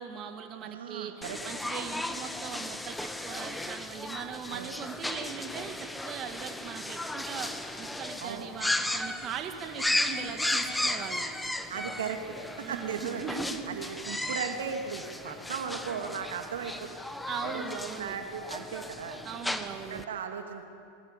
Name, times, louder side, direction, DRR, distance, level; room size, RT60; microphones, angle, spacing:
voice 1, 0.0-7.5 7.8-11.3 12.6-14.0 17.3-18.2 19.2-20.0, right 7 dB, 40° right, 5 dB, 2.0 m, -40 dB
voice 2, 0.6-1.4 4.5-4.7 8.2-8.4 11.7-12.2 12.6-13.3 13.7-16.9 17.4-19.2 19.7-20.6, right 7 dB, 80° right, 4 dB, 2.6 m, -37 dB
sound 1, 1.2-20.0, left 1 dB, 5° left, 1.4 m, -35 dB
sound 2, 9.4-17.4, right 1 dB, 10° right, 7.8 m, -54 dB
22.0 x 21.5 x 8.5 m, 2.5 s
hypercardioid pair, 105°, 0 cm